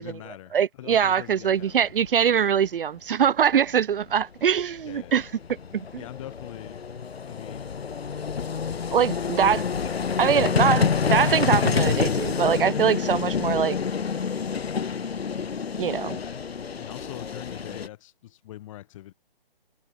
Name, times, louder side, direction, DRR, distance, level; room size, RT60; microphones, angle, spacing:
voice 1, 0.0-1.9 4.8-5.2 6.0-6.8 7.3-7.8 9.0-9.3 16.8-19.1, left 14 dB, 35° left, 6.3 m, -43 dB
voice 2, 0.5-5.3 5.7-5.8 8.9-9.6 10.2-13.8 15.8-16.2, right 8 dB, 60° right, 0.7 m, -23 dB
Vehicle, 1.8-1.9 2.1-2.2 4.2-4.3 4.5-17.9, left 6 dB, 85° left, 1.6 m, -27 dB
hypercardioid pair, 160°, 30 cm